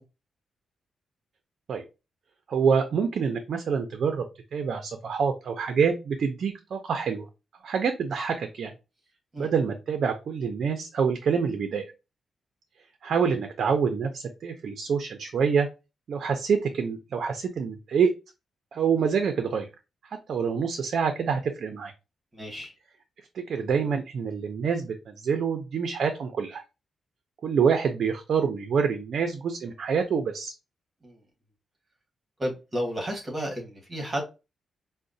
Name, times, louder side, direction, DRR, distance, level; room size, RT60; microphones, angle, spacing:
voice 1, 2.5-4.2 4.5-7.2 7.6-8.7 9.4-11.9 13.0-15.7 16.1-18.1 18.7-19.7 20.3-21.9 23.3-26.6 27.4-30.5, right 6 dB, 60° right, 0.4 m, -26 dB
voice 2, 22.3-22.7 31.0-31.2 32.4-34.2, equal, 20° right, 1.2 m, -32 dB
4.8 x 2.1 x 2.6 m
wide cardioid pair, 150°, 0 cm